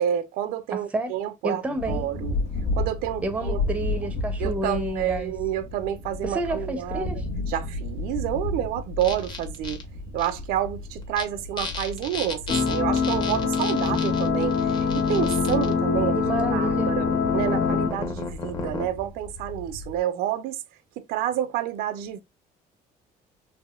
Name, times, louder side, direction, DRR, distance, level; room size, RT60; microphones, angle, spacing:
voice 1, 0.0-1.6 1.9-2.3 2.8-3.6 4.4-7.2 7.5-9.8 10.1-16.2 16.5-20.6 21.0-22.2, right 11 dB, 90° right, 0.5 m, -29 dB
voice 2, 0.7-1.1 1.4-2.1 3.2-5.3 6.2-7.3 16.1-16.9, right 2 dB, 10° right, 0.5 m, -30 dB
sound 1, 1.8-20.0, left 2 dB, 75° left, 1.5 m, -34 dB
sound 2, 9.0-9.8 10.2-10.3 11.0-11.2 11.6-15.7 16.5-18.9, left 4 dB, 30° left, 0.8 m, -35 dB
sound 3, 12.5-17.9, left 5 dB, 55° left, 1.2 m, -24 dB
3.4 x 3.0 x 2.3 m
cardioid pair, 150°, 15 cm